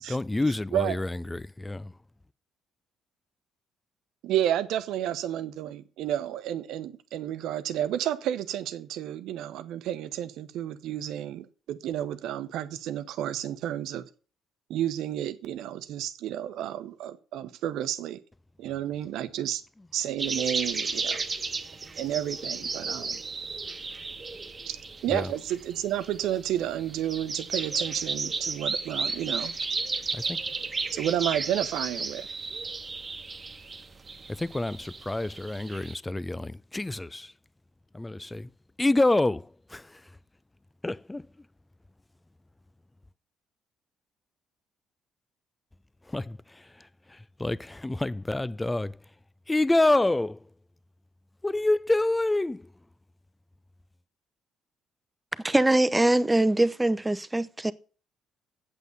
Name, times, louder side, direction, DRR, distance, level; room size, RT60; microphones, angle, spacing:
voice 1, 0.1-2.0 25.1-25.3 30.1-30.4 34.3-37.3 37.9-38.5 38.8-40.1 40.8-41.5 46.0-49.0 49.5-50.5 51.4-52.7, left 2 dB, 15° left, 0.5 m, -28 dB
voice 2, 4.2-14.1 14.7-18.2 18.6-19.6 19.9-21.2 22.0-23.2 24.6-24.8 25.0-29.5 30.9-32.3, right 11 dB, 65° right, 0.9 m, -31 dB
sound 1, 20.2-36.0, right 4 dB, 30° right, 1.3 m, -34 dB
voice 3, 55.4-57.7, right 1 dB, 15° right, 0.8 m, -23 dB
8.4 x 8.2 x 6.7 m
figure-of-eight pair, 45°, 0 cm